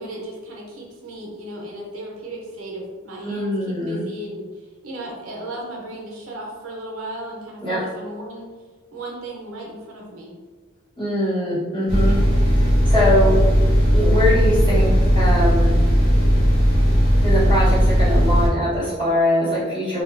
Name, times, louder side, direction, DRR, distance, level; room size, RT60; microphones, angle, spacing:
voice 1, 0.0-8.5 8.9-10.4, right 1 dB, 85° right, -2 dB, 0.7 m, -35 dB
voice 2, 3.2-4.0 7.6-7.8 11.0-12.2 12.9-13.4 13.9-15.8 17.2-20.0, left 1 dB, 25° left, -10 dB, 1.0 m, -22 dB
sound 1, 11.9-18.5, equal, 55° left, 0.8 m, -17 dB
2.7 x 2.3 x 2.4 m, 1.4 s
head